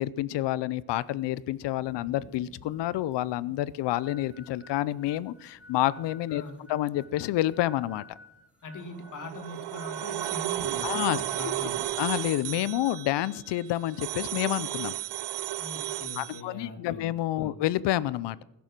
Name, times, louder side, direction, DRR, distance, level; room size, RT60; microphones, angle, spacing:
voice 1, 0.0-6.4 6.7-8.2 10.8-11.6 12.0-15.0 16.2-18.4, left 14 dB, 85° left, 19 dB, 0.6 m, -29 dB
Thunderstorm / Rain, 0.9-12.1, right 1 dB, 15° left, 2.3 m, -56 dB
sound 1, 3.9-11.2, left 2 dB, 5° right, 1.2 m, -53 dB
voice 2, 6.3-6.6 8.6-11.9 15.6-17.1 17.4-17.5, left 2 dB, 45° left, 5 dB, 2.4 m, -41 dB
sound 2, 9.0-16.4, right 14 dB, 75° right, 0.7 m, -33 dB
20.5 x 7.0 x 6.0 m, 0.95 s
cardioid pair, 160°, 41 cm